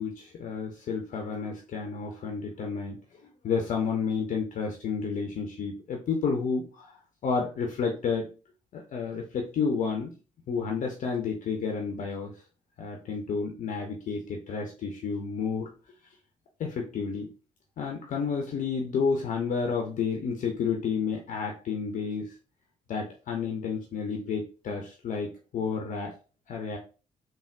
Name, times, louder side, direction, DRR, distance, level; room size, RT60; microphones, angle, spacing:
voice 1, 0.0-8.3 8.7-10.1 10.5-12.3 12.8-15.7 16.6-17.3 17.8-22.3 22.9-26.1 26.5-26.8, left 5 dB, 45° left, 1 dB, 0.5 m, -31 dB
3.4 x 2.1 x 2.3 m, 0.34 s
figure-of-eight pair, 40°, 17 cm